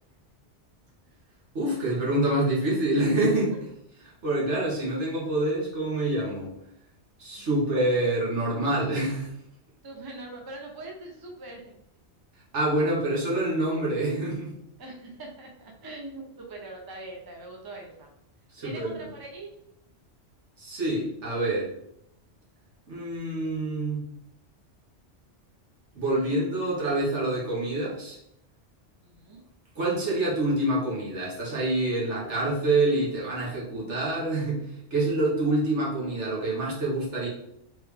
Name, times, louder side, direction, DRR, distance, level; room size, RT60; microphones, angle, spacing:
voice 1, 1.5-3.5 4.2-6.5 7.2-9.3 12.5-14.5 18.5-18.9 20.6-21.7 22.9-24.1 25.9-28.2 29.7-34.6 34.9-37.3, right 1 dB, 75° right, -5 dB, 1.7 m, -26 dB
voice 2, 7.3-7.6 9.8-11.6 14.8-18.1 18.6-19.5 26.1-26.3 29.0-29.4, right 2 dB, 25° right, 0 dB, 0.6 m, -42 dB
3.6 x 3.3 x 3.4 m, 0.77 s
omnidirectional pair, 1.2 m